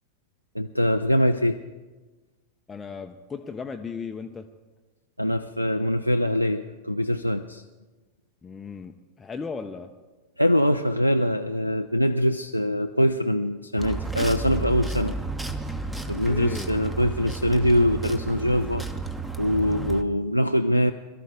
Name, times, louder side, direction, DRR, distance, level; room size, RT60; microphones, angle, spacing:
voice 1, 0.5-1.6 5.2-7.6 10.4-15.1 16.1-18.8 19.4-20.9, equal, 90° left, 5 dB, 0.4 m, -23 dB
voice 2, 2.7-4.5 8.4-9.9 16.2-16.8, left 5 dB, 15° left, 6 dB, 0.6 m, -36 dB
sound 1, 13.8-20.0, right 3 dB, 10° right, 1.0 m, -32 dB
22.5 x 13.0 x 3.8 m, 1.3 s
figure-of-eight pair, 90°, 0 cm